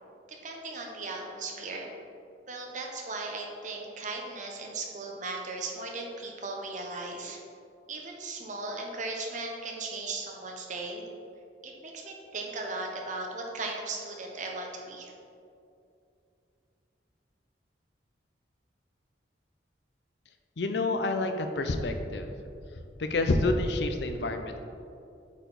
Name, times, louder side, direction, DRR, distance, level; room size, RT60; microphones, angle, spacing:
voice 1, 0.3-1.9 2.5-7.4 7.9-11.1 11.6-15.1, right 3 dB, 45° right, 1 dB, 0.9 m, -37 dB
voice 2, 20.6-22.3 23.0-24.6, left 2 dB, 70° left, 6 dB, 0.6 m, -28 dB
8.1 x 4.6 x 4.0 m, 2.6 s
head